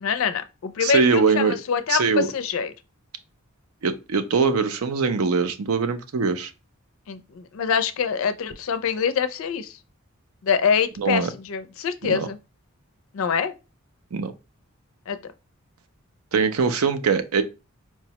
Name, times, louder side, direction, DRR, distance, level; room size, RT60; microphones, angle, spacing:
voice 1, 0.0-2.7 7.1-9.8 10.4-12.4 13.1-13.5 15.1-15.2, left 6 dB, 65° left, 0.4 m, -25 dB
voice 2, 0.8-1.6 1.9-2.3 3.8-6.5 11.0-11.3 12.0-12.3 14.1-14.3 16.3-17.4, right 5 dB, 75° right, 0.5 m, -22 dB
4.5 x 2.1 x 2.8 m
head